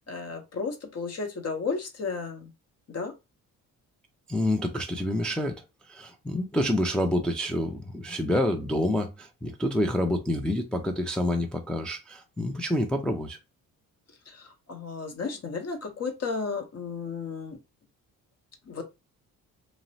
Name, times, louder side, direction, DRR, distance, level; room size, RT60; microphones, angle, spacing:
voice 1, 0.0-2.5 2.9-3.1 14.3-17.6 18.7-18.8, left 4 dB, 40° left, 0.8 m, -33 dB
voice 2, 4.3-5.6 5.9-13.4, left 1 dB, ahead, 0.4 m, -28 dB
2.8 x 2.0 x 2.6 m
supercardioid pair, 70°, 38 cm